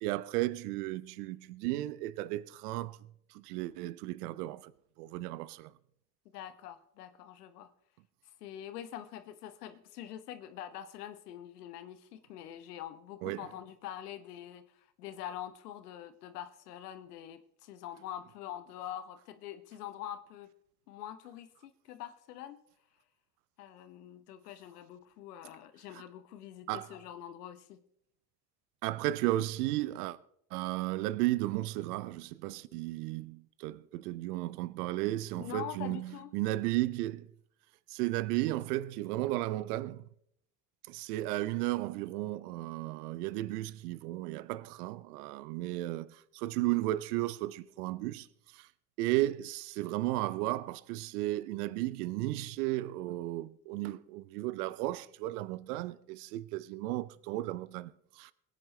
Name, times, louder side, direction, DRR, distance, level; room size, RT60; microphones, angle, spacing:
voice 1, 0.0-3.0 3.3-4.7 5.0-5.7 13.2-13.5 26.7-26.9 28.8-30.2 30.5-37.3 37.9-40.1 40.9-48.3 48.5-48.7 49.0-58.3, right 16 dB, 80° right, 0.7 m, -34 dB
voice 2, 6.3-7.7 8.4-20.5 20.9-22.6 23.6-27.8 35.4-36.3, left 11 dB, 85° left, 1.1 m, -45 dB
22.0 x 9.5 x 3.2 m
hypercardioid pair, 60°, 46 cm